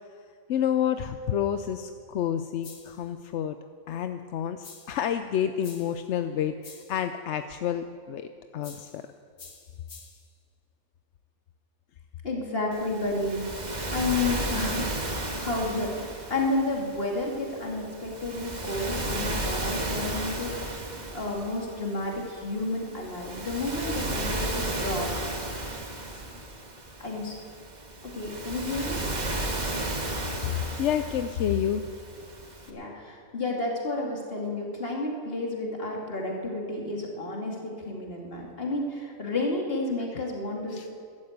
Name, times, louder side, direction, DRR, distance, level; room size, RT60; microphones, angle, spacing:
voice 1, 0.5-3.6 3.9-8.3 8.5-9.0 30.3-31.8 33.1-33.2 40.1-40.2 40.7-40.9, left 9 dB, 65° left, 9 dB, 0.8 m, -29 dB
sound 1, 2.6-3.1 4.6-5.1 5.6-6.1 6.6-7.0 8.6-9.0 9.4-10.3, left 5 dB, 90° left, 2.2 m, -48 dB
voice 2, 12.2-13.4 13.9-14.9 15.3-25.1 27.0-27.4 28.1-29.1 32.7-40.9, left 2 dB, 40° left, -1 dB, 2.6 m, -31 dB
Waves surf, 12.7-32.7, right 1 dB, 30° right, 1.5 m, -34 dB
13.0 x 12.5 x 8.0 m, 2.2 s
omnidirectional pair, 1.5 m